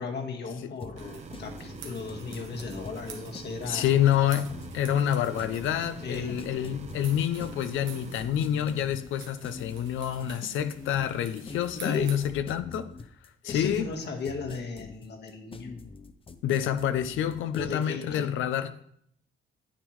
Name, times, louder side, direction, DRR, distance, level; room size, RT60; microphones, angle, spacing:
voice 1, 0.0-3.9 6.0-6.5 11.8-12.2 13.4-15.7 17.5-18.4, left 4 dB, 60° left, 1.6 m, -36 dB
sound 1, 0.8-17.8, left 4 dB, 25° left, 0.6 m, -44 dB
sound 2, 1.0-8.3, right 5 dB, 35° right, 0.7 m, -45 dB
sound 3, 1.0-12.3, right 6 dB, 75° right, 1.3 m, -49 dB
voice 2, 3.7-12.9 13.4-13.9 16.4-18.8, left 10 dB, 80° left, 0.5 m, -27 dB
9.7 x 8.1 x 3.1 m
cardioid pair, 90°, 20 cm